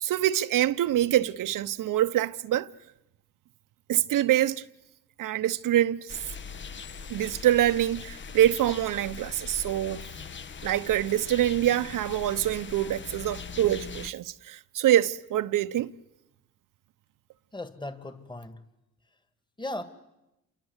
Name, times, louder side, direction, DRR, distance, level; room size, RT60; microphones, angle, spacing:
voice 1, 0.0-2.7 3.9-4.6 5.2-6.2 7.1-10.0 10.6-15.9, right 12 dB, 65° right, 0.9 m, -25 dB
sound 1, 6.1-14.1, left 5 dB, 35° left, 1.0 m, -41 dB
voice 2, 17.5-18.6 19.6-19.8, left 2 dB, 15° left, 2.3 m, -37 dB
28.5 x 24.0 x 8.2 m
cardioid pair, 80°, 34 cm